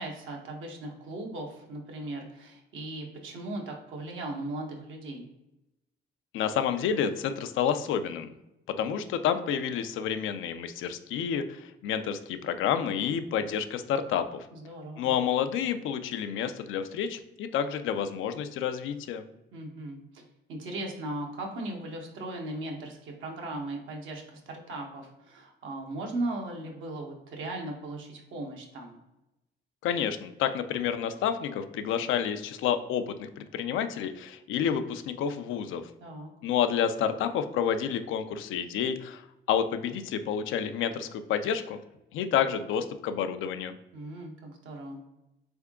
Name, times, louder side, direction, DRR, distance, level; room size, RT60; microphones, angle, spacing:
voice 1, 0.0-5.3 14.5-15.1 19.5-20.2 20.5-29.0 36.0-36.3 43.9-45.0, right 2 dB, 80° right, 1 dB, 1.0 m, -38 dB
voice 2, 6.3-8.3 8.8-14.5 15.0-19.2 29.8-35.8 36.4-39.2 39.5-41.8 42.1-43.7, left 8 dB, 85° left, 9 dB, 0.4 m, -29 dB
3.6 x 3.5 x 3.6 m, 0.93 s
cardioid pair, 90°, 20 cm